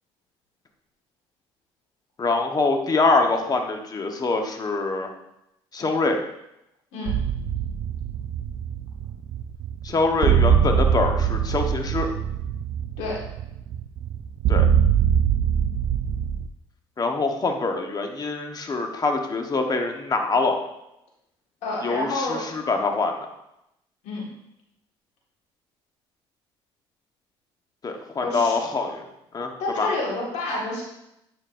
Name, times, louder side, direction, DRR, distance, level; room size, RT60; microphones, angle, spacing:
voice 1, 2.2-5.1 5.7-6.2 9.8-12.1 14.5-14.6 17.0-20.6 21.8-23.2 27.8-29.0 29.3-29.5 29.8-29.9, left 3 dB, 35° left, 4 dB, 1.0 m, -24 dB
sound 1, 7.1-16.5, right 8 dB, 65° right, 0.4 m, -23 dB
voice 2, 21.6-22.4 24.0-24.3 28.2-28.5 29.6-30.8, left 2 dB, 80° left, -3 dB, 1.7 m, -28 dB
8.9 x 5.3 x 2.6 m, 0.84 s
supercardioid pair, 80°, 12 cm